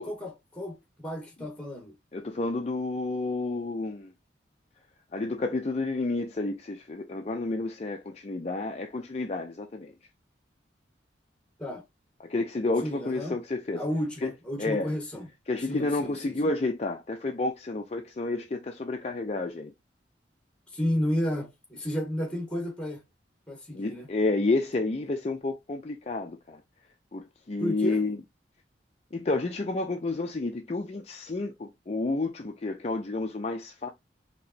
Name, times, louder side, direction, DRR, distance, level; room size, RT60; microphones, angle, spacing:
voice 1, 0.0-1.9 11.6-11.8 12.8-13.3 13.8-15.3 15.7-16.5 20.7-23.0 23.5-24.1 27.6-28.0, equal, 5° left, 1.4 m, -32 dB
voice 2, 2.1-4.1 5.1-9.9 12.2-13.8 14.2-14.3 14.6-14.9 15.5-19.7 23.7-26.6 27.1-28.2 29.1-33.9, left 2 dB, 35° left, 0.5 m, -30 dB
4.8 x 2.9 x 2.7 m
head